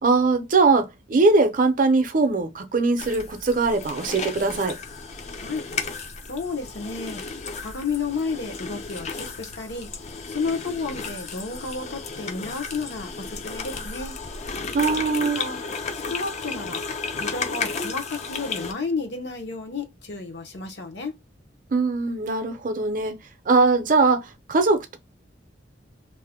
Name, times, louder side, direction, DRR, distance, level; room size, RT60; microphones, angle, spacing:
voice 1, 0.0-4.8 14.7-15.4 21.7-23.2 23.5-25.0, right 3 dB, 45° right, 0.5 m, -21 dB
sound 1, 3.0-18.7, left 4 dB, 35° left, 0.4 m, -33 dB
voice 2, 6.3-7.2 7.6-9.9 10.3-14.2 15.3-15.6 15.9-16.8 17.2-21.1, left 4 dB, 65° left, 0.8 m, -32 dB
2.6 x 2.1 x 3.4 m
head